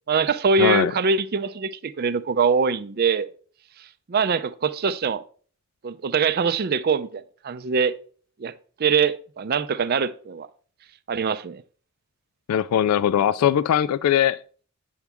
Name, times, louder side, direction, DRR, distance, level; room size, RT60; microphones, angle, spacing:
voice 1, 0.1-3.3 4.1-5.2 5.8-7.9 8.4-8.5 8.8-10.5 11.1-11.6, right 5 dB, 45° right, 0.5 m, -23 dB
voice 2, 0.6-0.9 12.5-14.4, left 9 dB, 85° left, 0.3 m, -20 dB
9.3 x 7.1 x 3.5 m
head